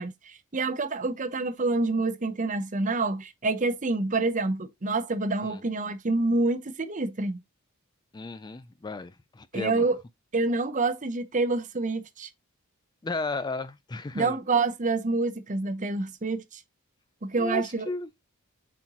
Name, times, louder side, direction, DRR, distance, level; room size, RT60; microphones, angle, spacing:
voice 1, 0.0-7.4 9.5-10.0 10.3-12.3 14.1-16.6 17.2-17.9, right 3 dB, 35° right, 0.8 m, -27 dB
voice 2, 8.1-9.8 13.0-14.4 17.4-18.1, left 3 dB, 20° left, 0.4 m, -34 dB
7.6 x 4.3 x 3.0 m
head